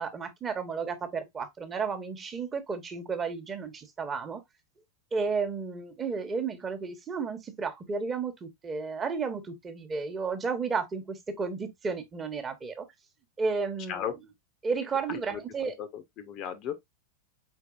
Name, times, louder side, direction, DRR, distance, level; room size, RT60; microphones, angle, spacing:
voice 1, 0.0-4.4 5.1-12.8 13.4-14.0 14.6-15.7, right 5 dB, 20° right, 1.1 m, -32 dB
voice 2, 15.1-15.4 15.8-16.7, left 8 dB, 35° left, 0.8 m, -35 dB
4.6 x 4.5 x 2.4 m
figure-of-eight pair, 90°, 0 cm